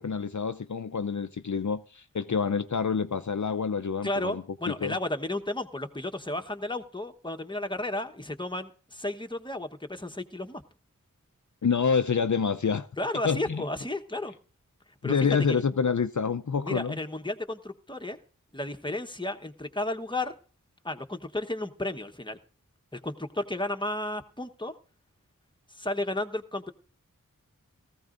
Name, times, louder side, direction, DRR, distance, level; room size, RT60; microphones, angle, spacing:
voice 1, 0.0-5.0 11.6-12.9 13.2-13.6 15.0-17.0, left 6 dB, 60° left, 0.6 m, -27 dB
voice 2, 4.0-10.6 13.0-14.3 15.0-15.2 15.5-15.6 16.7-18.2 18.5-20.3 20.8-22.4 22.9-24.7 25.7-26.7, left 1 dB, 15° left, 1.2 m, -33 dB
18.0 x 15.5 x 2.6 m
wide cardioid pair, 40°, 33 cm